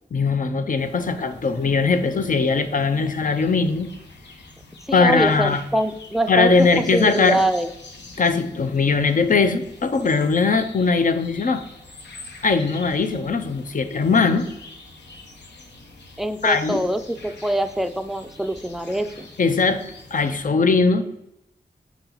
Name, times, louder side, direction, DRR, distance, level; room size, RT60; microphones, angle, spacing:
voice 1, 0.1-3.9 4.9-5.6 6.3-7.4 8.2-11.6 12.4-14.4 16.4-16.8 19.4-19.8 20.1-21.0, left 4 dB, 50° left, 9 dB, 0.5 m, -20 dB
sound 1, 0.8-20.5, left 2 dB, 85° left, 0.7 m, -45 dB
voice 2, 4.9-6.5 6.9-7.7 16.2-19.3, right 1 dB, ahead, 8 dB, 0.4 m, -24 dB
4.8 x 2.8 x 3.8 m, 0.83 s
cardioid pair, 50°, 18 cm